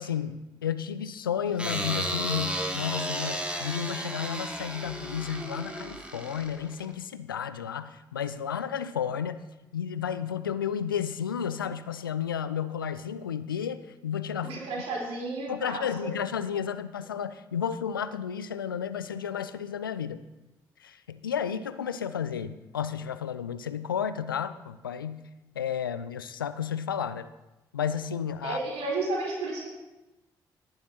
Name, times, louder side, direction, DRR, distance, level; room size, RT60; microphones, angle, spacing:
voice 1, 0.0-9.4 9.7-14.6 15.5-20.2 20.8-25.3 25.5-27.3 27.7-28.6, left 8 dB, 90° left, 13 dB, 0.4 m, -32 dB
sound 1, 1.6-6.9, right 1 dB, 10° right, 2.3 m, -33 dB
voice 2, 14.4-16.1 28.4-29.7, right 2 dB, 65° right, -2 dB, 3.9 m, -32 dB
17.5 x 11.0 x 2.8 m, 1.0 s
figure-of-eight pair, 40°, 11 cm